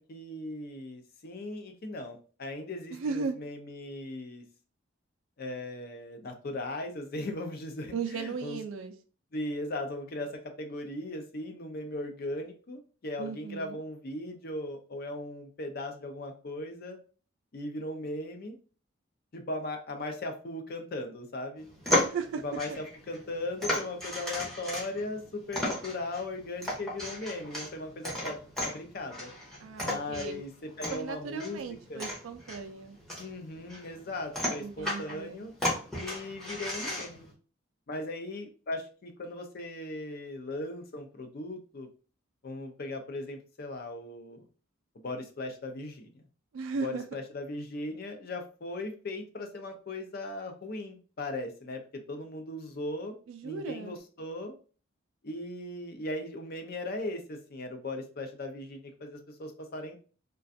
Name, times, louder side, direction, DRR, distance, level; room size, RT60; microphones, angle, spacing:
voice 1, 0.1-4.4 5.4-8.6 9.3-17.0 17.5-18.6 19.3-21.7 22.4-29.3 29.8-32.0 33.2-35.5 35.9-37.3 37.9-41.9 42.4-44.5 45.0-46.2 46.8-53.2 53.4-54.6 55.2-60.0, left 2 dB, 45° left, 5 dB, 0.5 m, -38 dB
voice 2, 2.9-3.4 7.9-8.9 13.2-13.8 21.9-22.4 29.6-30.4 30.9-33.0 34.6-35.4 46.5-47.1 53.3-54.0, right 5 dB, 75° right, 7 dB, 0.3 m, -36 dB
sound 1, 21.6-37.3, left 1 dB, ahead, 0.7 m, -35 dB
2.4 x 2.2 x 2.5 m, 0.38 s
head